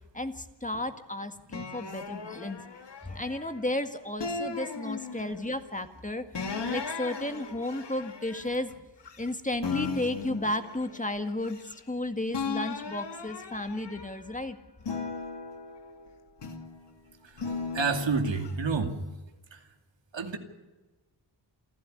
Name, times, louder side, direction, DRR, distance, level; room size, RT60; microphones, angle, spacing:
voice 1, 0.1-2.6 3.0-6.3 6.7-8.7 9.2-11.6 11.9-14.6, left 1 dB, 15° left, 8 dB, 1.9 m, -33 dB
sound 1, 1.5-3.7 4.2-5.6 6.3-9.3 9.6-12.0 12.3-14.3 14.8-16.8 17.4-18.5, left 4 dB, 70° left, 2.4 m, -37 dB
voice 2, 17.7-19.0 19.5-19.6 20.1-20.4, right 4 dB, 80° right, 5 dB, 2.6 m, -29 dB
28.5 x 12.0 x 9.9 m, 1.1 s
wide cardioid pair, 65°, 44 cm